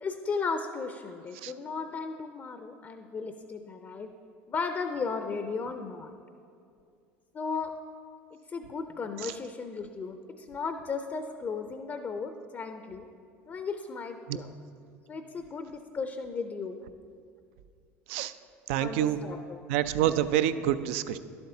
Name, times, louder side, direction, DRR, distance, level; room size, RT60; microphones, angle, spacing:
voice 1, 0.0-4.1 4.5-6.1 7.3-7.7 8.5-13.1 13.5-14.5 15.1-16.8 18.8-19.6, left 4 dB, 30° left, 7 dB, 0.5 m, -35 dB
voice 2, 18.7-19.2 19.7-21.2, right 11 dB, 75° right, 13 dB, 0.3 m, -27 dB
11.5 x 7.8 x 2.8 m, 2.4 s
hypercardioid pair, 80°, 7 cm